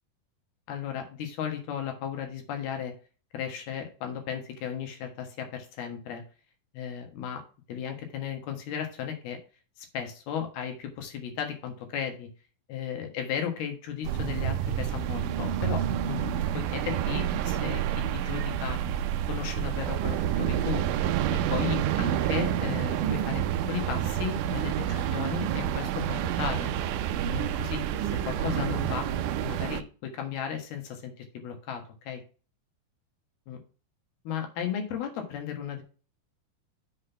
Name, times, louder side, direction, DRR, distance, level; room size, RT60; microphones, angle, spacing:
voice 1, 0.7-2.9 3.3-6.2 6.7-7.4 7.7-9.4 9.8-12.3 12.7-18.8 19.3-20.8 21.3-26.7 27.3-29.1 29.4-32.2 33.5-33.6 34.3-35.8, left 8 dB, 85° left, 4 dB, 3.5 m, -35 dB
sound 1, 14.1-29.8, right 10 dB, 80° right, 1.8 m, -29 dB
7.3 x 4.1 x 5.6 m, 0.36 s
omnidirectional pair, 4.3 m